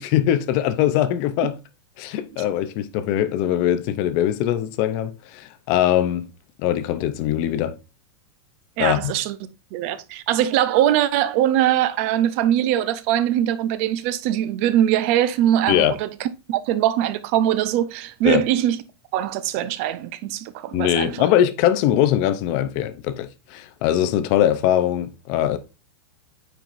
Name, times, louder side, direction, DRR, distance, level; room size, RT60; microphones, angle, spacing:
voice 1, 0.0-1.5 2.0-6.3 6.6-7.8 8.8-9.1 15.7-15.9 18.2-18.4 20.7-25.6, left 11 dB, 25° left, 0.5 m, -21 dB
voice 2, 8.8-9.4 9.7-18.8 19.1-21.3, right 11 dB, 30° right, 0.5 m, -22 dB
9.1 x 4.6 x 2.5 m
supercardioid pair, 180°, 14 cm